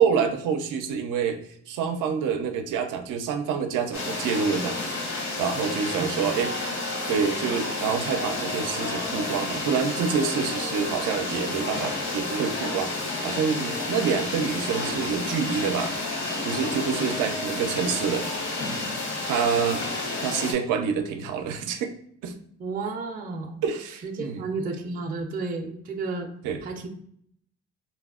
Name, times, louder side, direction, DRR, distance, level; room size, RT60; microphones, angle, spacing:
voice 1, 0.0-1.4 1.7-6.5 7.1-15.9 16.4-18.3 19.2-19.8 20.2-21.9 22.2-22.3 23.6-24.4 26.4-26.6, right 6 dB, 90° right, 6 dB, 0.5 m, -27 dB
sound 1, 3.9-20.5, left 2 dB, 65° left, 0.9 m, -30 dB
voice 2, 5.9-6.4 17.0-17.1 22.6-23.6 24.0-26.3 26.6-26.9, right 3 dB, 30° right, 3 dB, 0.4 m, -32 dB
3.9 x 2.0 x 2.3 m, 0.67 s
cardioid pair, 90°, 30 cm